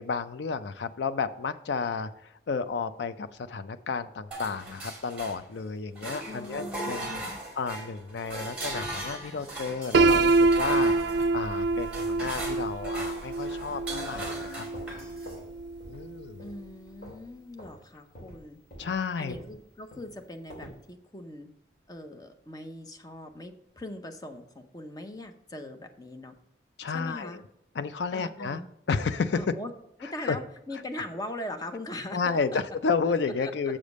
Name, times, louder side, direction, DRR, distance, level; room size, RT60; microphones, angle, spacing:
voice 1, 0.0-7.2 7.6-10.9 11.3-15.1 15.9-16.4 18.8-19.3 26.8-27.4 27.8-28.6 28.9-29.4 30.0-30.4 32.1-33.8, left 5 dB, 80° left, 12 dB, 0.4 m, -32 dB
sound 1, 4.3-5.6 6.0-15.4, right 1 dB, 5° right, 2.3 m, -39 dB
voice 2, 6.2-7.4 16.4-18.6 19.2-21.5 21.9-26.3 26.9-27.4 28.1-28.7 29.3-29.7 30.0-32.6 33.0-33.1 33.4-33.5, left 1 dB, 20° left, 6 dB, 0.7 m, -41 dB
Piano, 9.9-15.8, right 3 dB, 75° right, 0.4 m, -25 dB
sound 2, 14.2-15.5 15.8-16.1 16.4-17.3 17.6-17.8 18.1-20.8, equal, 55° left, 2.7 m, -47 dB
7.3 x 5.0 x 5.2 m, 0.81 s
head